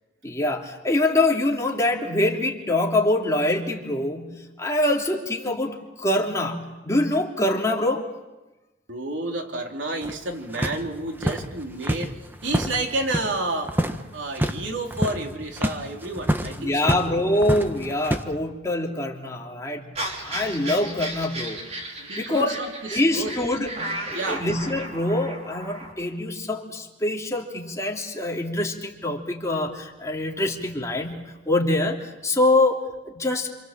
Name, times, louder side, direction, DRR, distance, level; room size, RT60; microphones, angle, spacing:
voice 1, 0.2-8.1 16.6-19.9 20.2-21.6 22.2-22.6 22.9-32.8 33.1-33.5, left 1 dB, 15° left, -1 dB, 3.1 m, -24 dB
voice 2, 8.9-12.1 12.4-13.7 14.1-17.0 22.0-23.3 24.1-24.5, right 2 dB, 85° right, 2 dB, 3.5 m, -30 dB
sound 1, 10.0-13.4 13.6-14.0 14.3-14.6 14.9-17.1 17.4-18.2, equal, 10° right, 1.3 m, -27 dB
sound 2, 19.9-25.9, right 1 dB, 35° right, 5.4 m, -35 dB
27.5 x 27.0 x 7.5 m, 1.1 s
head